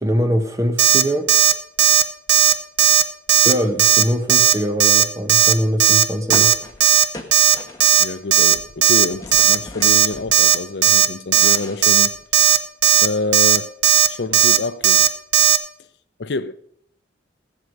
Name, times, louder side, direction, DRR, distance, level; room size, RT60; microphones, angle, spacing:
voice 1, 0.0-1.3 3.4-6.5, equal, 15° right, 1.2 m, -22 dB
Alarm, 0.8-1.0 1.3-1.5 1.8-2.0 2.3-2.5 2.8-3.0 3.3-3.5 3.8-4.0 4.3-4.5 4.8-5.0 5.3-5.5 5.8-6.0 6.3-6.5 6.8-7.0 7.3-7.5 7.8-8.0 8.3-8.5 8.8-9.1 9.3-9.6 9.8-10.1 10.3-10.6 10.8-11.1 11.3-11.6 11.8-12.1 12.3-12.6 12.8-13.1 13.3-13.6 13.8-14.1 14.3-14.6 14.8-15.1 15.3-15.6, right 9 dB, 65° right, 0.8 m, -14 dB
sound 1, 6.3-8.2 8.5-10.6 11.0-12.6, left 2 dB, 20° left, 1.4 m, -37 dB
voice 2, 8.0-12.1 13.0-13.7 14.1-15.1 16.2-16.5, left 3 dB, 65° left, 0.6 m, -27 dB
15.5 x 8.0 x 5.3 m
head